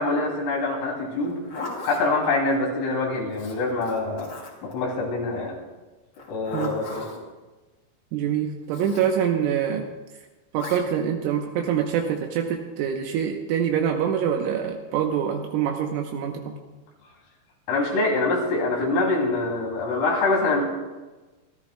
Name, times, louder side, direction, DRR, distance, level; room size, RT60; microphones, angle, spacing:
voice 1, 0.0-1.4 1.8-4.3 4.6-5.6 6.3-7.1 17.7-20.6, left 3 dB, 80° left, -3 dB, 5.4 m, -24 dB
Zipper (clothing), 1.2-2.0 3.3-4.7 6.1-7.2 8.7-9.1 10.6-10.8, left 2 dB, 35° left, 2.9 m, -37 dB
voice 2, 8.1-9.9 10.5-16.6, right 8 dB, 80° right, 2 dB, 3.3 m, -25 dB
28.0 x 13.5 x 2.2 m, 1.2 s
omnidirectional pair, 5.8 m